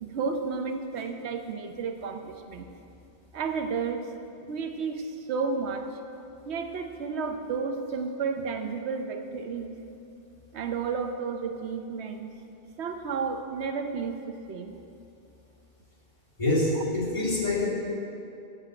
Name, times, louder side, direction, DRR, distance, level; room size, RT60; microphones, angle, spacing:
voice 1, 0.0-2.7 3.3-4.1 4.5-5.9 6.4-9.8 10.5-12.3 12.8-14.8 16.7-16.8, right 5 dB, 80° right, 6 dB, 0.9 m, -32 dB
voice 2, 16.4-17.7, left 2 dB, 30° left, -7 dB, 2.4 m, -25 dB
8.1 x 6.2 x 7.5 m, 2.7 s
omnidirectional pair, 1.1 m